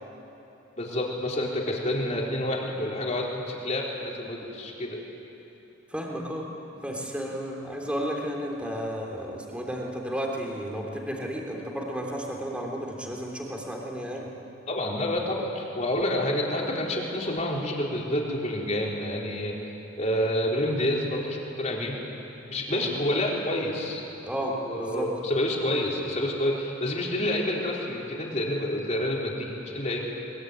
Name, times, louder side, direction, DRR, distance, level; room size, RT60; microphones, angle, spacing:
voice 1, 0.8-5.0 14.7-19.6 20.0-22.0 22.5-24.0 24.4-30.0, left 1 dB, 35° left, -2 dB, 4.0 m, -28 dB
voice 2, 5.9-6.5 6.8-14.3 22.7-22.9 24.2-25.1, equal, 5° right, -1 dB, 3.3 m, -33 dB
22.5 x 22.0 x 9.5 m, 3.0 s
head